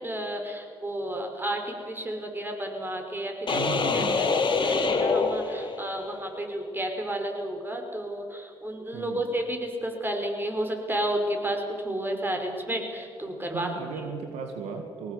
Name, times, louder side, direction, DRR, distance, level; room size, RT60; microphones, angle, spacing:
voice 1, 0.0-3.6 3.9-13.7, right 1 dB, 20° right, 3 dB, 5.4 m, -32 dB
sound 1, 3.5-6.1, left 4 dB, 45° left, 3.5 m, -25 dB
voice 2, 3.5-4.3 8.9-9.3 13.5-15.1, right 5 dB, 75° right, 4 dB, 2.1 m, -36 dB
21.0 x 18.5 x 8.3 m, 2.3 s
hypercardioid pair, 50°, 11 cm